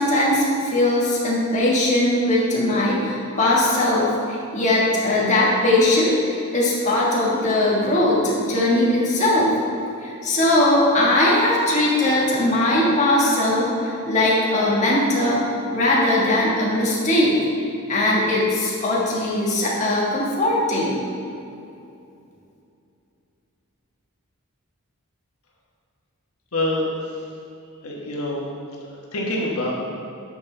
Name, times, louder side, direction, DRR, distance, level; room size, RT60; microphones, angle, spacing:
voice 1, 0.0-9.6 10.0-15.4 15.7-17.3 17.9-21.0, left 1 dB, 35° left, -5 dB, 1.5 m, -20 dB
voice 2, 26.5-27.1 27.8-28.4 29.1-29.7, left 1 dB, 80° left, -3 dB, 1.3 m, -25 dB
9.6 x 6.5 x 3.3 m, 2.6 s
head